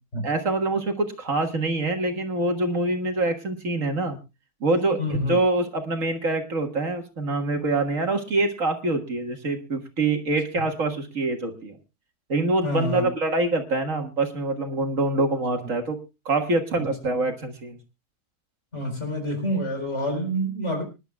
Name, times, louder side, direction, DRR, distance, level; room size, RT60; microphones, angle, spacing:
voice 1, 0.2-4.2 4.6-11.7 12.3-16.0 16.3-17.8, right 2 dB, 60° right, 1.9 m, -25 dB
voice 2, 5.0-5.4 10.6-10.7 12.6-13.0 16.8-16.9 18.7-20.8, equal, 45° left, 4.7 m, -27 dB
26.0 x 11.0 x 2.3 m
omnidirectional pair, 1.6 m